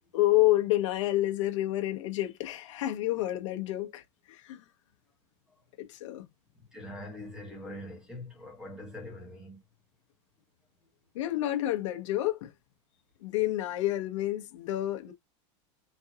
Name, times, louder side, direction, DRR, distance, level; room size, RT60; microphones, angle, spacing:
voice 1, 0.1-4.6 5.8-6.3 11.1-12.5 13.2-15.1, left 15 dB, 80° left, 1.0 m, -29 dB
voice 2, 6.7-9.6, left 1 dB, 5° right, 1.4 m, -43 dB
4.5 x 2.8 x 2.3 m
supercardioid pair, 175°, 16 cm